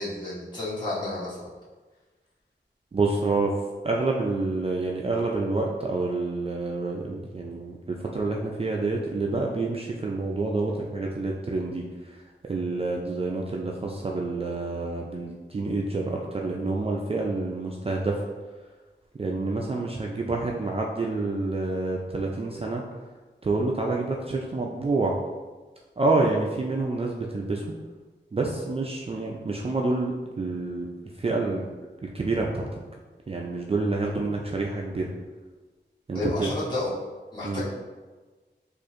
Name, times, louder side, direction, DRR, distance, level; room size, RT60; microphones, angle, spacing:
voice 1, 0.0-1.4 36.1-36.9 37.3-37.6, left 2 dB, 25° left, -9 dB, 1.4 m, -31 dB
voice 2, 2.9-3.5 3.8-11.8 12.1-12.2 12.5-18.2 19.2-22.8 23.4-25.1 26.0-27.6 28.3-30.9 31.2-31.7 32.0-32.7 33.3-35.1 36.1-36.5 37.4-37.6, right 3 dB, 30° right, -1 dB, 0.3 m, -28 dB
4.4 x 2.5 x 2.5 m, 1.3 s
wide cardioid pair, 65°, 19 cm